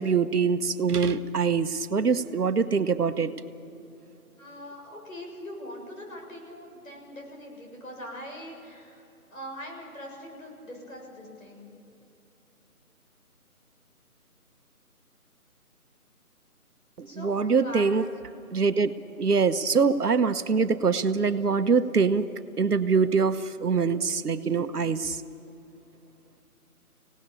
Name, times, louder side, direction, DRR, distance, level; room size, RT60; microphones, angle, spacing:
voice 1, 0.0-3.3 17.0-18.0 18.5-22.3 22.6-25.2, right 5 dB, 85° right, 11 dB, 1.2 m, -24 dB
voice 2, 4.4-9.0 9.3-11.7 17.1-18.0, equal, 65° left, 0 dB, 7.4 m, -42 dB
25.5 x 18.0 x 7.0 m, 2.8 s
figure-of-eight pair, 170°, 45 cm